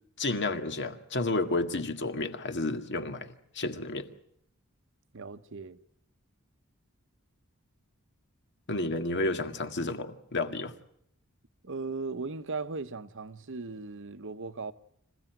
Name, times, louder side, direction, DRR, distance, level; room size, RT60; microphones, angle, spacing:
voice 1, 0.2-4.1 8.7-10.7, left 2 dB, 55° left, 1.9 m, -31 dB
voice 2, 5.1-5.8 11.6-14.7, right 3 dB, 60° right, 1.1 m, -37 dB
26.5 x 16.0 x 9.2 m
head